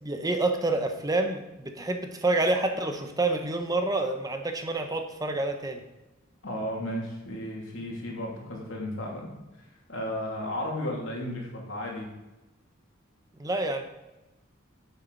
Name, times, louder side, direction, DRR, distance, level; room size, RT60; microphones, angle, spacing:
voice 1, 0.0-5.8 13.4-13.8, right 2 dB, 20° right, 5 dB, 1.0 m, -28 dB
voice 2, 6.4-9.4 9.9-12.1, left 1 dB, 70° left, -1 dB, 2.8 m, -34 dB
9.5 x 7.8 x 4.0 m, 1.0 s
head